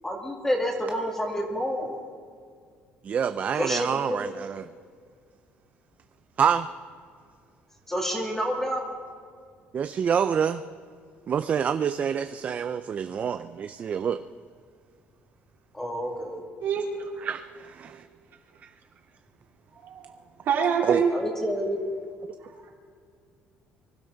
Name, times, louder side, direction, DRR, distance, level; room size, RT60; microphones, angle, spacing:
voice 1, 0.0-2.0 3.6-4.5 7.9-8.8 15.7-16.4 21.1-21.8, equal, 10° left, 0 dB, 2.5 m, -29 dB
voice 2, 3.0-4.7 6.4-6.7 9.7-10.6 11.3-14.2 17.2-18.0 20.8-21.0, right 7 dB, 35° right, 10 dB, 0.4 m, -27 dB
voice 3, 16.6-17.1 19.7-20.1 20.4-21.1, right 6 dB, 60° right, 0 dB, 3.0 m, -25 dB
24.5 x 12.0 x 3.9 m, 2.1 s
cardioid pair, 145°, 4 cm